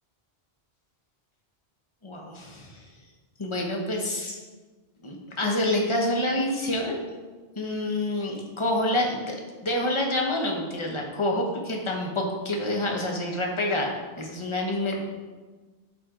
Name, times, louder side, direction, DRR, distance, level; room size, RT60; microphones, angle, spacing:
voice 1, 2.0-2.8 3.4-4.4 5.0-7.0 7.6-9.3 9.6-13.9 14.2-15.0, left 1 dB, 30° left, 0 dB, 1.2 m, -27 dB
12.0 x 4.5 x 3.8 m, 1.3 s
omnidirectional pair, 1.1 m